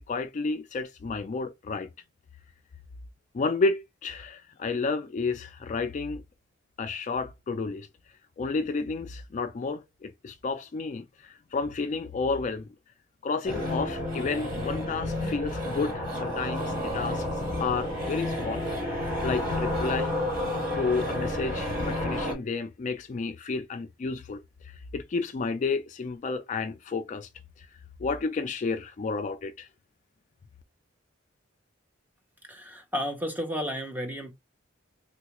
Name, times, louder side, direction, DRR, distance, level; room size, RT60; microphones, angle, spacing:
voice 1, 0.0-1.9 3.3-6.2 6.8-7.9 8.4-12.7 13.2-17.2 17.6-20.3 20.7-27.3 27.6-27.7 28.0-29.7, left 4 dB, 40° left, 0.3 m, -31 dB
sound 1, 13.5-22.3, left 1 dB, 50° right, 1.6 m, -30 dB
voice 2, 32.4-34.3, equal, 10° right, 0.6 m, -32 dB
3.7 x 2.3 x 2.9 m
head